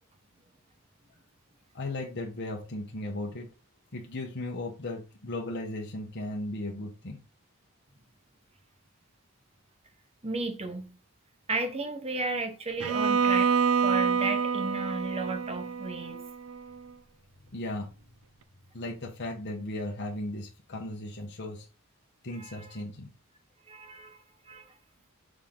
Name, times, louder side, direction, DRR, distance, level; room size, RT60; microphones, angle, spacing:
voice 1, 1.7-3.5 3.9-7.2 17.5-17.9 18.7-21.7 22.2-23.1, left 1 dB, 50° left, 1.2 m, -36 dB
voice 2, 10.2-10.9 11.5-13.5 13.8-16.2 22.4-22.7 23.7-24.2 24.5-24.6, right 2 dB, 25° right, 0.9 m, -34 dB
Bowed string instrument, 12.8-16.8, right 6 dB, 75° right, 0.5 m, -27 dB
6.6 x 3.8 x 3.7 m
head